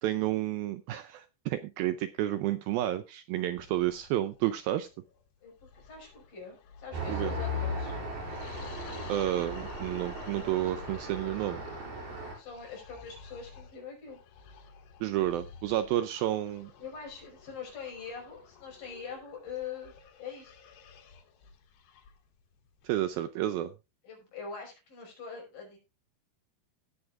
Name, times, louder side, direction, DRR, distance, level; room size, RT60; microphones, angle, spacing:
voice 1, 0.0-4.9 7.1-7.3 9.1-11.6 15.0-16.7 22.8-23.7, right 13 dB, 80° right, 11 dB, 2.2 m, -31 dB
sound 1, 3.6-23.2, left 6 dB, 80° left, 3.7 m, -52 dB
voice 2, 5.4-7.9 12.4-14.2 16.8-20.6 24.0-25.8, left 6 dB, 60° left, 0 dB, 7.0 m, -43 dB
Traffic noise roadway noise, 6.9-12.3, left 1 dB, 60° right, 7.4 m, -37 dB
17.5 x 8.6 x 2.5 m, 0.27 s
omnidirectional pair, 4.7 m